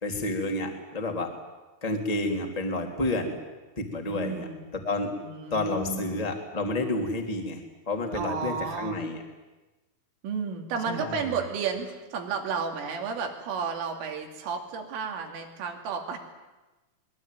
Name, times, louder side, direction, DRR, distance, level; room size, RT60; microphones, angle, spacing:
voice 1, 0.0-1.3 1.8-3.4 3.8-5.1 5.5-9.2 10.9-11.3, left 2 dB, 10° left, 3 dB, 2.0 m, -30 dB
voice 2, 4.1-4.7 5.2-6.1 8.1-9.0 10.2-16.2, right 6 dB, 85° right, 3 dB, 5.3 m, -32 dB
25.0 x 21.5 x 9.3 m, 1.1 s
omnidirectional pair, 5.6 m